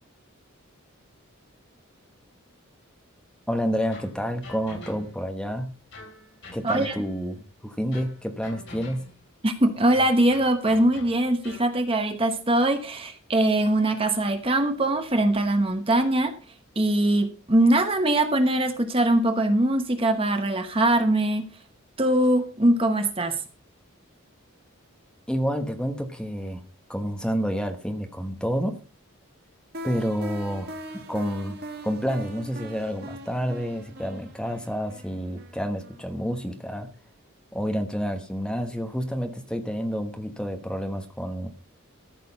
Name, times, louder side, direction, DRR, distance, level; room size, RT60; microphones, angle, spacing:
voice 1, 3.5-5.8 6.5-9.1 25.3-26.6 26.9-28.8 29.8-31.6 31.8-36.9 37.5-41.5, equal, 5° left, 5 dB, 1.2 m, -29 dB
sound 1, 3.9-5.3 5.9-7.4 7.9-9.3 9.9-11.8, left 2 dB, 55° left, 3.2 m, -45 dB
voice 2, 6.6-7.0 9.4-16.3 16.8-21.5 22.0-23.4, right 1 dB, 25° right, 7 dB, 1.0 m, -22 dB
sound 2, 29.7-36.5, right 1 dB, 50° right, 1.8 m, -41 dB
14.0 x 6.6 x 5.2 m, 0.37 s
head